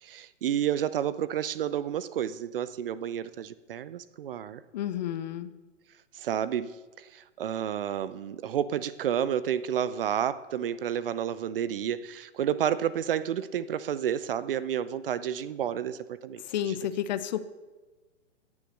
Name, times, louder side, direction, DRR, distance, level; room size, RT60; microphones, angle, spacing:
voice 1, 0.0-4.6 6.1-16.8, right 9 dB, 50° right, 16 dB, 0.7 m, -30 dB
voice 2, 4.7-5.5 16.5-17.4, left 11 dB, 35° left, 13 dB, 0.7 m, -31 dB
17.5 x 7.1 x 6.6 m, 1.3 s
figure-of-eight pair, 125°, 37 cm